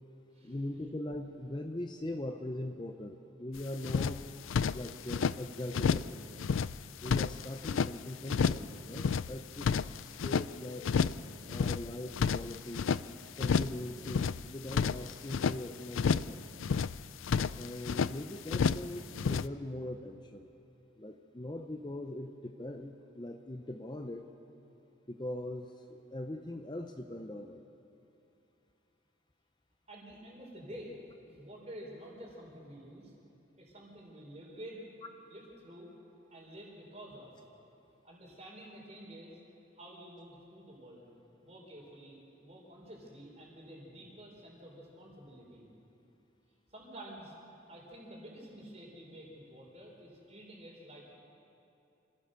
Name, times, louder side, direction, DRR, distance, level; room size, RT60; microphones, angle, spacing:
voice 1, 0.4-4.3 4.7-6.3 7.0-10.9 11.5-12.9 13.4-16.4 17.6-20.5 21.0-24.2 25.1-27.6, left 1 dB, 20° left, 5 dB, 0.7 m, -41 dB
sound 1, 3.6-3.7 3.8-5.4 5.7-6.1 6.4-7.9 8.3-8.7 8.9-10.5 10.8-11.2 11.5-13.0 13.4-13.8 14.0-15.6 15.9-16.3 16.6-18.1 18.5-18.9 19.1-19.5, left 6 dB, 85° left, 0.4 m, -30 dB
voice 2, 29.9-30.9 31.3-33.1 33.6-34.9 35.3-35.9 36.3-37.4 38.0-39.4 39.7-41.1 41.4-45.7 46.7-47.3 47.7-51.2, right 1 dB, 35° right, -1 dB, 4.6 m, -49 dB
26.5 x 16.0 x 6.7 m, 2.8 s
head